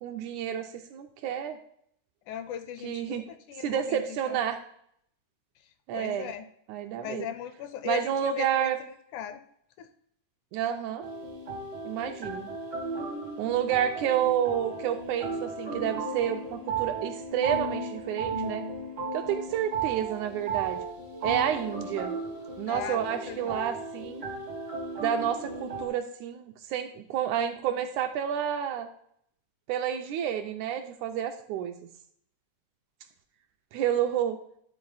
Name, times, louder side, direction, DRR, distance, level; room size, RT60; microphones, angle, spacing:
voice 1, 0.0-1.6 2.8-3.3 3.6-4.7 5.9-6.3 6.7-7.3 7.8-8.8 10.5-11.0 11.9-12.5 13.4-18.6 19.1-20.8 21.2-22.2 22.6-24.3 25.0-28.9 29.7-31.8 33.7-34.4, right 9 dB, 80° right, 6 dB, 1.8 m, -30 dB
voice 2, 2.3-4.4 5.9-6.5 7.0-8.7 9.1-9.4 9.8-9.9 22.7-23.5, left 9 dB, 80° left, 10 dB, 1.8 m, -38 dB
sound 1, 11.0-25.9, right 4 dB, 60° right, 0.6 m, -35 dB
11.5 x 4.0 x 3.9 m, 0.69 s
omnidirectional pair, 3.7 m